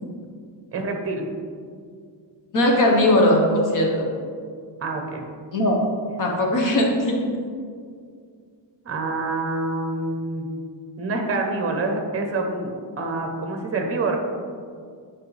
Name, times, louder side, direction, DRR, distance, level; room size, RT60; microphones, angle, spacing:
voice 1, 0.7-1.3 4.8-5.2 8.8-10.5 11.0-14.2, right 3 dB, 30° right, 3 dB, 0.8 m, -26 dB
voice 2, 2.5-4.1 5.5-5.8 6.2-7.2, left 1 dB, 45° left, -1 dB, 1.2 m, -19 dB
7.5 x 5.3 x 3.3 m, 2.1 s
cardioid pair, 180°, 45 cm